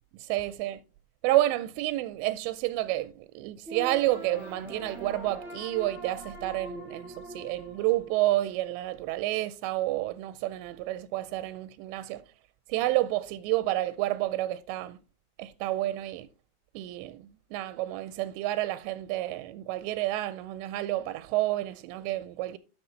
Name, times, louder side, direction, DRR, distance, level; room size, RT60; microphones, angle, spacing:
voice 1, 0.1-0.8 1.2-12.2 12.7-15.0 15.4-16.3 16.7-17.2 17.5-22.6, right 16 dB, 90° right, 2.8 m, -30 dB
sound 1, 3.7-8.7, right 2 dB, 5° right, 2.3 m, -42 dB
12.0 x 6.4 x 3.1 m
omnidirectional pair, 4.9 m